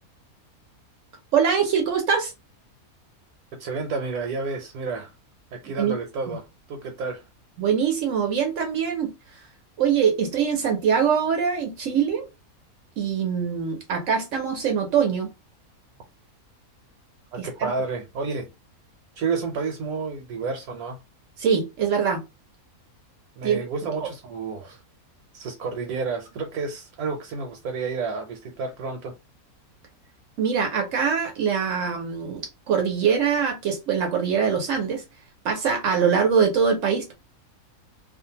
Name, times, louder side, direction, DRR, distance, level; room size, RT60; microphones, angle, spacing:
voice 1, 1.3-2.3 5.8-5.9 6.3-6.4 7.6-9.1 9.8-12.3 13.0-15.3 17.4-17.5 21.4-22.2 23.4-23.6 30.4-35.0 35.4-37.1, right 7 dB, 65° right, 0.9 m, -23 dB
voice 2, 3.6-5.1 5.5-7.2 17.3-18.5 19.1-21.0 23.4-24.8 25.3-29.1, right 4 dB, 80° right, 1.2 m, -30 dB
2.6 x 2.4 x 2.7 m
omnidirectional pair, 1.5 m